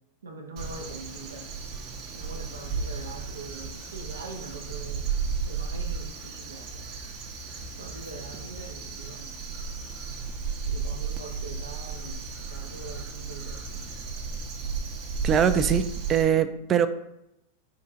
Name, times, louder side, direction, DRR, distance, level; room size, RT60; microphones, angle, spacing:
voice 1, 0.2-1.5 2.1-5.1 5.5-6.7 7.8-9.3 10.7-13.7, right 3 dB, 90° right, 4 dB, 0.6 m, -43 dB
Crow, 0.6-16.2, right 5 dB, 50° right, 0.7 m, -34 dB
voice 2, 15.2-16.9, right 8 dB, 30° right, 11 dB, 0.3 m, -22 dB
3.7 x 2.4 x 4.4 m, 0.86 s
hypercardioid pair, 105°, 0 cm